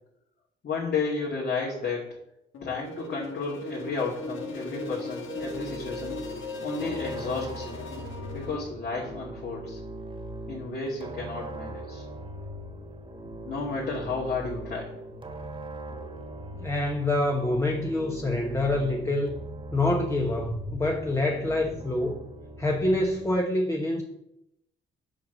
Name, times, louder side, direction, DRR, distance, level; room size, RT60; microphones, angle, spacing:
voice 1, 0.6-2.0 2.6-6.2 6.6-7.8 8.3-9.8 10.5-12.0 13.4-14.9, left 4 dB, 55° left, -4 dB, 2.5 m, -32 dB
sound 1, 2.5-8.6, left 2 dB, 75° left, 1.6 m, -37 dB
sound 2, 5.4-23.4, right 1 dB, 25° right, 1.7 m, -40 dB
voice 2, 16.6-19.4 19.7-22.2 22.6-24.0, left 1 dB, 15° left, 1 dB, 1.1 m, -26 dB
7.8 x 4.8 x 6.7 m, 0.83 s
cardioid pair, 90°, 20 cm